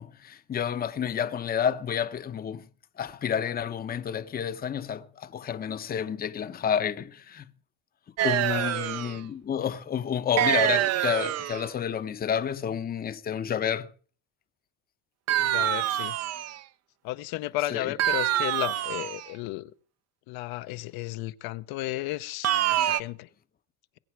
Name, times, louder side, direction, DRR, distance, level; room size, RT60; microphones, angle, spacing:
voice 1, 0.0-2.7 3.0-7.5 8.2-13.9 17.7-17.9, left 8 dB, 25° left, 0.7 m, -30 dB
sound 1, 8.2-9.2 10.4-11.7 15.3-16.6 18.0-19.3 22.4-23.0, right 12 dB, 40° right, 0.6 m, -26 dB
voice 2, 15.4-16.2 17.0-19.7 20.3-22.5 22.8-23.3, left 16 dB, 70° left, 0.7 m, -33 dB
22.0 x 8.3 x 4.6 m
cardioid pair, 135°, 38 cm